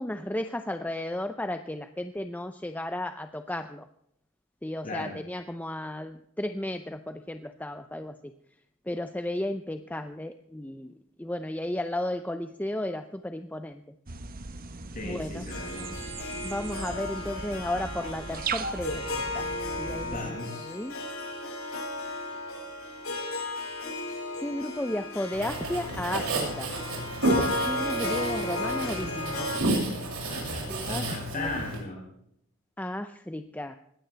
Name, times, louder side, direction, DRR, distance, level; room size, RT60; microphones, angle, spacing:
voice 1, 0.0-3.9 4.6-8.3 8.9-10.9 11.2-13.8 15.0-15.5 16.4-19.5 19.8-21.0 24.4-26.8 27.3-29.5 30.7-31.1 31.3-31.6 32.8-33.8, left 1 dB, 10° left, 8 dB, 0.6 m, -34 dB
sound 1, 14.1-20.3, right 4 dB, 40° right, 1.1 m, -38 dB
voice 2, 14.9-16.0 19.9-20.7 30.2-32.0, left 2 dB, 40° left, -1 dB, 7.0 m, -37 dB
Harp, 15.5-29.6, left 2 dB, 75° left, 6.4 m, -34 dB
Writing, 25.3-31.8, right 2 dB, 70° right, 6.8 m, -31 dB
20.5 x 15.5 x 3.4 m, 0.75 s
head